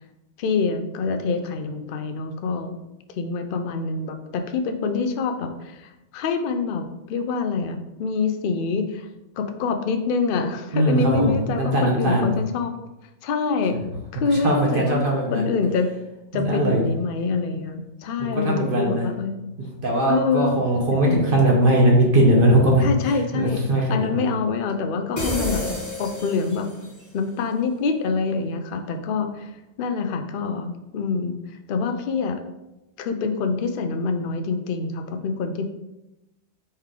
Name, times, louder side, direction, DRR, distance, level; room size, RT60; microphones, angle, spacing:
voice 1, 0.4-2.8 3.2-9.1 9.4-12.7 13.2-13.9 14.1-15.0 15.3-15.9 16.3-19.4 20.1-20.6 21.0-21.2 22.8-23.6 23.9-25.6 26.0-26.7 27.1-29.5 29.8-31.4 31.7-32.4 33.0-35.6, left 4 dB, 65° left, 6 dB, 0.5 m, -26 dB
voice 2, 10.7-12.3 14.4-15.5 16.3-16.8 18.2-19.1 19.8-22.9 23.3-24.3, right 1 dB, 50° right, -1 dB, 0.8 m, -20 dB
sound 1, 25.2-27.0, left 1 dB, 20° left, 0.6 m, -29 dB
4.3 x 3.2 x 3.6 m, 0.95 s
omnidirectional pair, 1.4 m